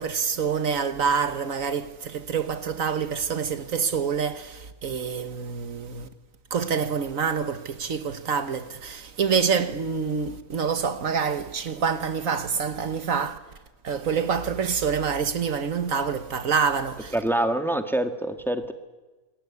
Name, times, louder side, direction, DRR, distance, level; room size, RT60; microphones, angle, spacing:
voice 1, 0.0-6.1 6.5-13.4 13.8-17.1, right 6 dB, 65° right, 1.5 m, -26 dB
voice 2, 17.1-18.7, right 1 dB, ahead, 1.7 m, -25 dB
28.0 x 20.5 x 9.7 m
omnidirectional pair, 1.5 m